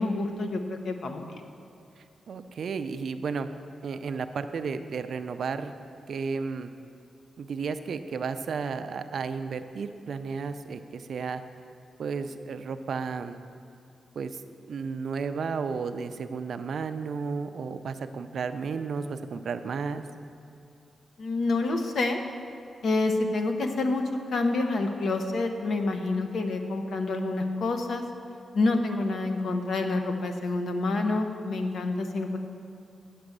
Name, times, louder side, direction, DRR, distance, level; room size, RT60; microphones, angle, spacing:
voice 1, 0.0-1.4 21.2-22.2 22.8-24.0 24.3-28.0 28.5-32.4, left 2 dB, 60° left, 5 dB, 0.8 m, -28 dB
voice 2, 2.0-3.5 3.8-5.7 6.1-6.7 7.4-11.4 12.0-13.4 14.2-14.4 14.7-20.0, right 5 dB, 60° right, 9 dB, 0.4 m, -33 dB
8.5 x 6.0 x 7.8 m, 2.5 s
wide cardioid pair, 170°, 0 cm